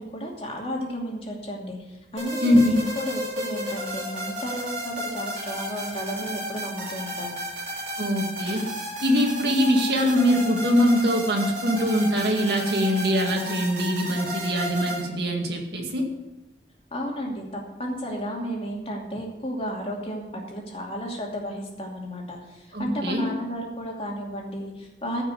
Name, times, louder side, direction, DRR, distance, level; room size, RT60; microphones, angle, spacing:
voice 1, 0.0-7.4 16.9-25.2, equal, 35° left, -1 dB, 2.6 m, -33 dB
sound 1, 2.2-15.0, equal, 40° right, 4.0 m, -33 dB
voice 2, 8.0-8.7 9.0-16.1 22.7-23.3, equal, 70° right, 2 dB, 2.1 m, -22 dB
15.0 x 5.9 x 8.2 m, 1.0 s
head